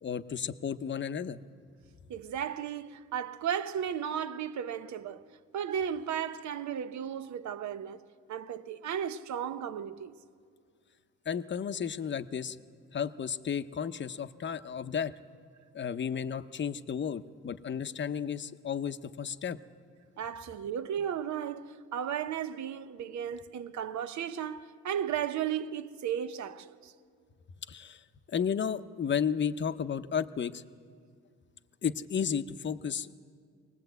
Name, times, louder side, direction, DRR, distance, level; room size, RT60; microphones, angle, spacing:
voice 1, 0.0-1.4 11.3-12.6 12.9-15.1 15.7-19.6 27.7-30.6 31.8-33.1, left 7 dB, 40° left, 0.7 m, -33 dB
voice 2, 2.1-5.2 5.5-8.0 8.3-10.1 20.2-26.9, right 9 dB, 70° right, 0.9 m, -35 dB
22.5 x 19.0 x 8.0 m
cardioid pair, 90°, 30 cm